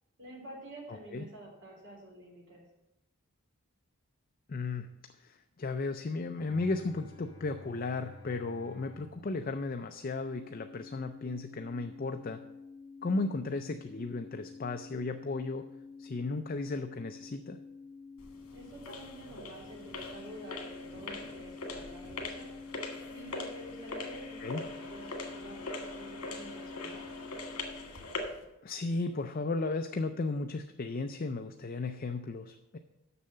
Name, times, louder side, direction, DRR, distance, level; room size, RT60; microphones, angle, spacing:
voice 1, 0.2-2.6 18.5-22.5 23.1-27.0, right 1 dB, 55° right, -2 dB, 3.3 m, -49 dB
voice 2, 0.9-1.3 4.5-4.9 5.2-12.4 13.0-15.7 16.0-17.6 24.4-24.6 28.6-32.8, left 3 dB, 40° left, 7 dB, 0.4 m, -35 dB
Bowed string instrument, 6.4-10.5, left 2 dB, 20° left, 1.4 m, -52 dB
sound 1, 10.0-27.9, left 4 dB, 5° right, 1.0 m, -49 dB
sound 2, 18.2-28.4, left 2 dB, 75° left, 1.8 m, -42 dB
6.9 x 6.5 x 7.8 m, 0.91 s
head